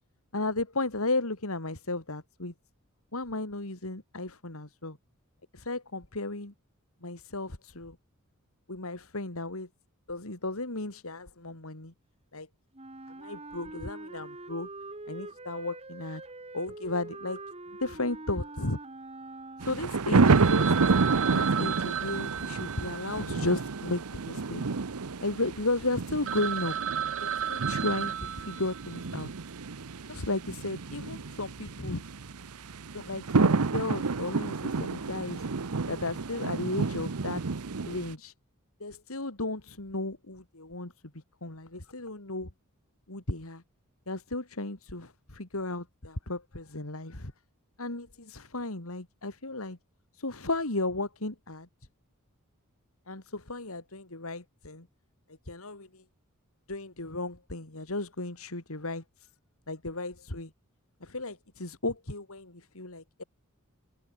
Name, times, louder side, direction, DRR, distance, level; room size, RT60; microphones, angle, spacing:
voice 1, 0.3-2.5 3.1-5.0 5.5-6.5 7.0-8.0 8.7-9.7 10.1-11.9 12.3-12.5 13.2-14.7 15.1-16.2 16.5-17.4 17.8-18.8 19.6-20.8 21.3-24.6 25.2-26.8 27.2-29.3 30.1-32.0 32.9-35.5 35.9-37.4 37.9-38.3 38.8-42.5 43.1-43.6 44.1-47.3 47.8-49.8 50.1-51.7 53.1-54.9 55.5-56.0 56.7-59.0 59.7-60.5 61.0-63.2, left 2 dB, 70° left, 3.0 m, -34 dB
Wind instrument woodwind instrument, 12.7-20.1, right 2 dB, 30° right, 2.1 m, -44 dB
sound 1, 19.6-38.1, right 4 dB, 90° right, 0.9 m, -29 dB
Telephone, 20.3-24.6 24.9-25.0 25.5-25.6 26.0-26.1 26.3-29.2, right 9 dB, 60° right, 0.7 m, -34 dB
head